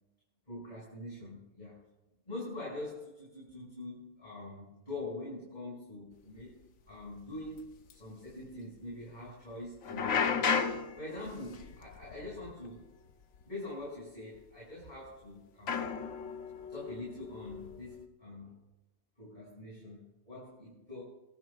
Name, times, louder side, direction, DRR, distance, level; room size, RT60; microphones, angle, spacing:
voice 1, 0.5-1.8 2.2-6.6 6.9-10.5 11.0-12.9 13.4-15.9 16.7-18.6 19.2-21.0, left 2 dB, 30° left, -8 dB, 6.4 m, -44 dB
sound 1, 6.4-6.5 7.0-7.2 7.5-7.6 7.9-8.0 9.8-12.8 13.1-13.4 14.4-14.5 15.7-18.1, left 6 dB, 65° left, 1.3 m, -34 dB
25.0 x 14.0 x 2.4 m, 1.0 s
omnidirectional pair, 1.5 m